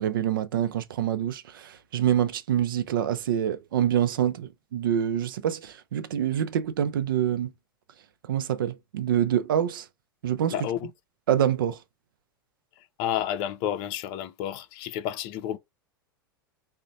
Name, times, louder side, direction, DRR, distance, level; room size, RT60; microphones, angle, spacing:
voice 1, 0.0-7.5 8.2-9.9 10.2-10.7 11.3-11.8, right 10 dB, 70° right, 0.4 m, -26 dB
voice 2, 10.5-10.9 13.0-15.6, left 10 dB, 45° left, 0.5 m, -30 dB
3.7 x 2.1 x 2.6 m
figure-of-eight pair, 90°, 12 cm